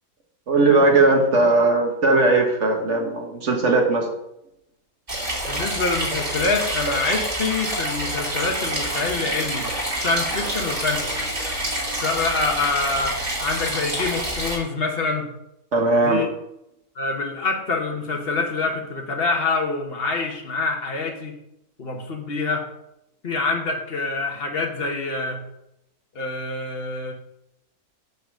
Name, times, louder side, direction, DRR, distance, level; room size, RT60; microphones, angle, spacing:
voice 1, 0.5-4.1 15.7-16.2, right 2 dB, 50° right, 2 dB, 1.6 m, -18 dB
sound 1, 5.1-14.6, right 1 dB, 35° right, 2.7 m, -27 dB
voice 2, 5.4-9.7 10.0-11.3 12.0-15.3 16.0-16.3 16.9-21.4 21.8-22.7 23.2-25.4 26.1-27.1, left 3 dB, 40° left, 2 dB, 1.3 m, -26 dB
8.2 x 4.0 x 6.3 m, 0.84 s
omnidirectional pair, 1.7 m